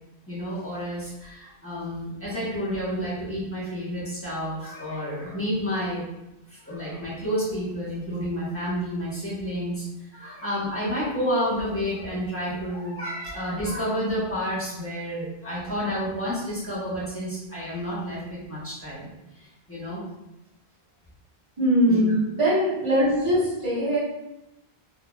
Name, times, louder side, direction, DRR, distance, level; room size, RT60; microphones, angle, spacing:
voice 1, 0.3-6.0 6.6-9.8 10.1-19.1 19.7-20.0 21.9-22.0, equal, 15° left, -9 dB, 1.1 m, -30 dB
voice 2, 21.6-24.0, equal, 30° right, -10 dB, 1.4 m, -21 dB
3.8 x 2.8 x 2.3 m, 0.93 s
omnidirectional pair, 1.0 m